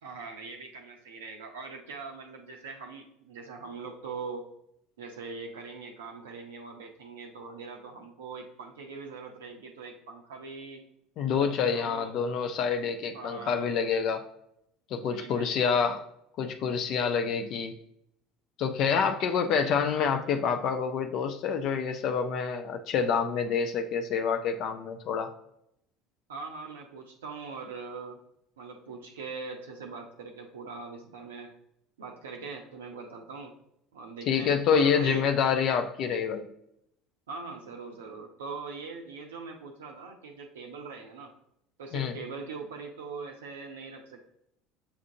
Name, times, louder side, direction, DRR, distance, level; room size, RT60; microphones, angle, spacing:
voice 1, 0.0-4.5 5.0-10.8 11.3-12.1 13.1-13.7 15.0-15.6 26.3-28.2 28.6-31.5 32.0-33.5 33.9-35.3 37.3-41.3 41.8-44.3, right 4 dB, 70° right, 2 dB, 0.4 m, -42 dB
voice 2, 11.2-14.3 14.9-16.1 16.4-17.7 18.6-25.3 34.3-36.5 41.9-42.2, left 6 dB, 50° left, 6 dB, 0.4 m, -27 dB
7.0 x 2.5 x 2.6 m, 0.76 s
figure-of-eight pair, 65°, 0 cm